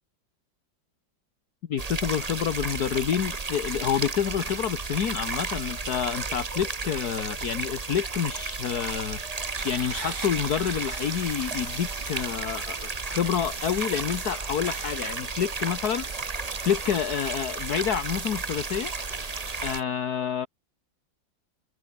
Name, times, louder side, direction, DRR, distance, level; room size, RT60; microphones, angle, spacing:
voice 1, 1.7-9.2 9.6-16.1 16.6-18.9 19.6-20.5, left 8 dB, 60° left, 1.6 m, -28 dB
sound 1, 1.8-19.8, right 4 dB, 25° right, 1.1 m, -33 dB
sound 2, 9.6-19.8, right 4 dB, 60° right, 3.9 m, -43 dB
open air
omnidirectional pair, 2.0 m